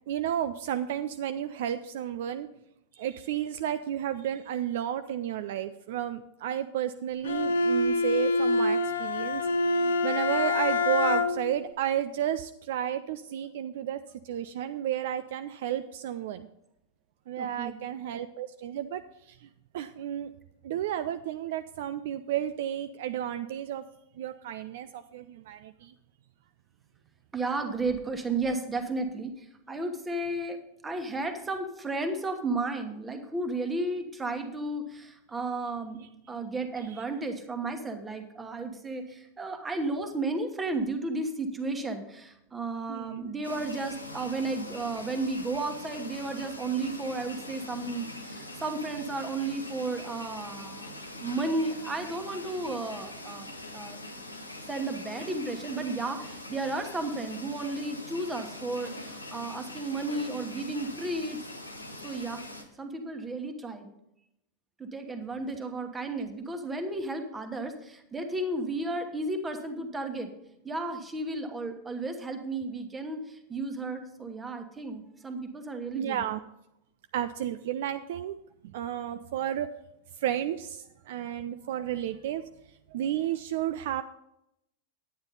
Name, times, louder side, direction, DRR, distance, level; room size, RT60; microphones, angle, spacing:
voice 1, 0.1-2.5 2.9-16.5 17.3-19.5 19.7-20.3 20.6-23.8 24.2-25.9 36.0-36.1 36.8-37.0 42.9-43.3 75.9-76.4 77.1-78.4 78.6-79.7 80.1-82.4 82.9-84.0, right 11 dB, 55° right, 10 dB, 0.3 m, -32 dB
Bowed string instrument, 7.2-11.6, left 3 dB, 65° left, 0.5 m, -26 dB
voice 2, 17.4-17.8 27.3-30.6 30.8-36.0 36.3-50.9 51.2-53.5 53.7-54.0 54.7-61.4 62.0-62.4 62.8-63.9 64.8-70.3 70.6-76.3, right 2 dB, 15° right, 6 dB, 1.3 m, -33 dB
sound 1, 43.4-62.6, left 1 dB, 85° left, 1.0 m, -43 dB
9.5 x 9.4 x 4.1 m, 0.82 s
figure-of-eight pair, 90°, 0 cm